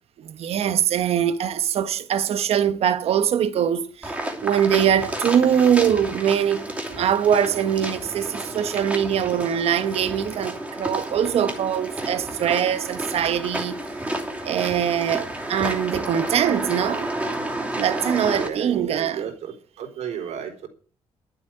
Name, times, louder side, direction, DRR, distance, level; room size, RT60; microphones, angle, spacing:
voice 1, 0.2-13.8 14.4-17.1 17.8-19.2, right 9 dB, 60° right, 1.2 m, -22 dB
sound 1, 4.0-18.5, right 1 dB, 10° right, 2.7 m, -31 dB
voice 2, 18.3-20.7, right 8 dB, 80° right, 4.1 m, -33 dB
12.0 x 7.9 x 8.7 m
cardioid pair, 165°, 11 cm